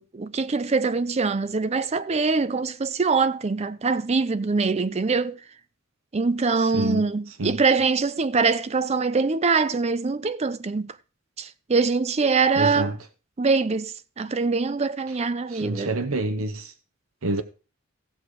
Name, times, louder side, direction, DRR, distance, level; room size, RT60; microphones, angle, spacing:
voice 1, 0.0-5.4 6.1-10.9 11.4-13.0 13.4-16.0, right 4 dB, 30° right, 0.5 m, -23 dB
voice 2, 6.7-7.0 7.4-7.6 12.6-12.9 15.5-16.7 17.2-17.4, right 2 dB, 85° right, 0.9 m, -27 dB
15.5 x 6.4 x 4.9 m
head